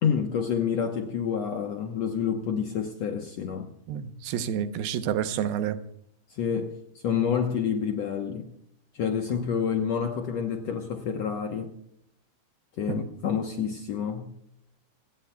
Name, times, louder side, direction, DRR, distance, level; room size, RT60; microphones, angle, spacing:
voice 1, 0.0-3.7 6.3-6.8 7.0-8.5 8.9-11.7 12.8-14.3, left 7 dB, 70° left, 4 dB, 1.6 m, -28 dB
voice 2, 3.9-5.8 12.9-13.0, right 9 dB, 85° right, 10 dB, 2.8 m, -29 dB
27.0 x 17.5 x 2.3 m, 0.73 s
omnidirectional pair, 4.3 m